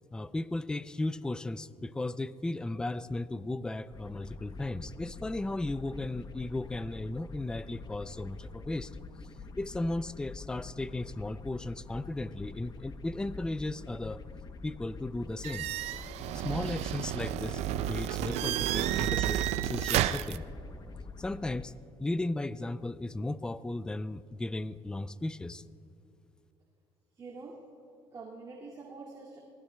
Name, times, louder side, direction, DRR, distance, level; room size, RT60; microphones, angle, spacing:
voice 1, 0.1-8.9 9.6-14.2 14.6-15.7 16.3-20.4 21.2-21.7 22.0-25.6, left 2 dB, 5° left, 15 dB, 0.3 m, -35 dB
sound 1, 3.9-21.6, left 4 dB, 40° left, 0.8 m, -46 dB
sound 2, 15.4-20.4, right 12 dB, 80° right, 0.4 m, -31 dB
voice 2, 27.2-27.6 28.1-29.4, right 3 dB, 30° right, -4 dB, 2.3 m, -45 dB
24.5 x 19.0 x 2.3 m, 2.8 s
cardioid pair, 125°, 11 cm